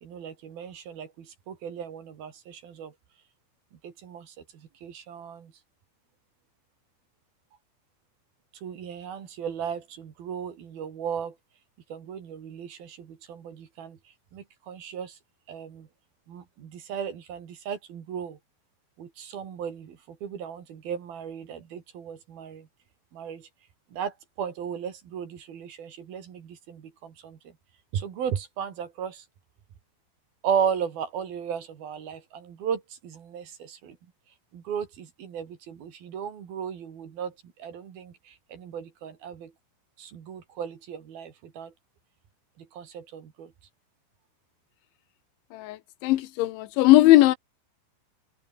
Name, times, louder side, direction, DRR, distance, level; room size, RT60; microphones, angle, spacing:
voice 1, 0.0-2.9 3.8-4.3 4.8-5.5 8.6-11.3 11.9-14.0 14.3-15.2 15.5-15.9 16.3-18.4 19.0-22.7 23.1-23.5 23.9-27.4 27.9-29.2 30.4-34.0 34.5-37.3 37.6-39.5 40.0-41.7 42.6-43.5, right 8 dB, 55° right, 4.2 m, -35 dB
voice 2, 46.0-47.4, left 16 dB, 80° left, 3.4 m, -18 dB
open air
omnidirectional pair, 5.4 m